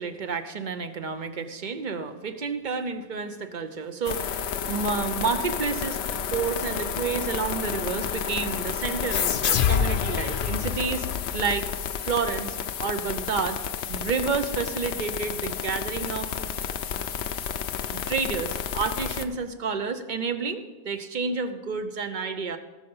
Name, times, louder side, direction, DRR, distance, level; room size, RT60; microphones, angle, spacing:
voice 1, 0.0-11.1 11.3-11.7 12.0-13.6 13.9-16.3 17.9-22.6, right 5 dB, 45° right, 9 dB, 0.9 m, -30 dB
sound 1, 4.0-19.2, left 8 dB, 80° left, 1.0 m, -31 dB
sound 2, 9.1-12.3, left 8 dB, 60° left, 0.7 m, -27 dB
17.5 x 6.8 x 5.5 m, 1.3 s
omnidirectional pair, 1.1 m